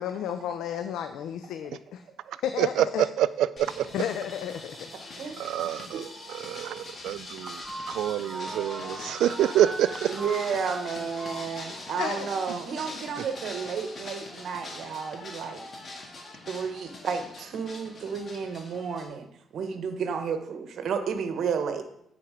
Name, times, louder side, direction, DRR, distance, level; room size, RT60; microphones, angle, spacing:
voice 1, 0.0-2.0 2.4-3.0 3.9-5.3 5.6-5.7 8.8-9.1 10.9-11.0 12.0-12.3, left 9 dB, 80° left, 8 dB, 0.4 m, -33 dB
voice 2, 2.6-3.9 5.4-7.6 7.9-10.1, right 12 dB, 85° right, 16 dB, 0.3 m, -27 dB
sound 1, 3.6-19.1, left 2 dB, 45° left, 1.9 m, -42 dB
voice 3, 5.9-7.0 10.1-15.6 16.5-19.3 19.5-21.8, right 6 dB, 65° right, 8 dB, 1.0 m, -32 dB
sound 2, 7.4-12.5, right 2 dB, 25° right, 0.5 m, -40 dB
8.7 x 4.4 x 4.9 m, 0.76 s
cardioid pair, 90°, 0 cm